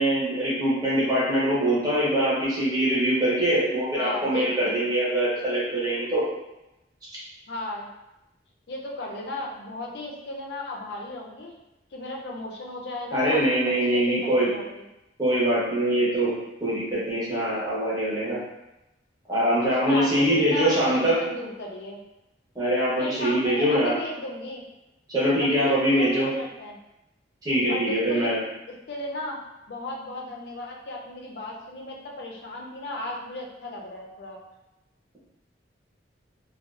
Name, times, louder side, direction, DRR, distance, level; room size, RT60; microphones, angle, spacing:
voice 1, 0.0-6.2 13.1-14.5 15.2-16.3 16.6-18.4 19.3-21.1 22.5-24.0 25.1-26.3 27.4-28.4, right 1 dB, 20° right, -8 dB, 0.8 m, -23 dB
voice 2, 4.0-4.8 7.5-7.9 8.7-11.5 11.9-13.4 13.9-14.7 19.6-22.0 23.0-24.6 25.4-26.8 27.7-28.3 28.7-29.4 29.7-34.4, left 2 dB, 60° left, -1 dB, 0.5 m, -35 dB
2.4 x 2.3 x 2.4 m, 0.94 s
head